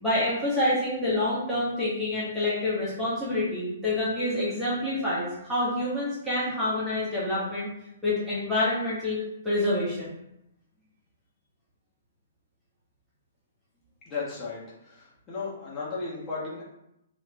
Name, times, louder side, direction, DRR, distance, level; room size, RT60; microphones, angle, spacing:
voice 1, 0.0-7.7 8.0-9.2 9.4-10.1, left 1 dB, ahead, -11 dB, 1.0 m, -27 dB
voice 2, 14.1-14.6 15.3-16.6, left 4 dB, 20° left, -8 dB, 1.2 m, -34 dB
3.1 x 2.3 x 3.1 m, 0.84 s
hypercardioid pair, 130°, 0 cm